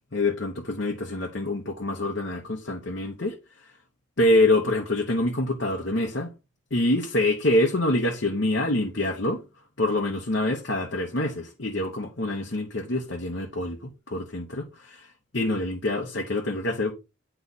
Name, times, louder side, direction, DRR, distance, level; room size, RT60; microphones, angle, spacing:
voice 1, 0.1-3.3 4.2-6.3 6.7-9.4 9.8-15.1 15.3-16.9, left 1 dB, 60° left, 1.0 m, -26 dB
9.5 x 3.3 x 4.0 m
head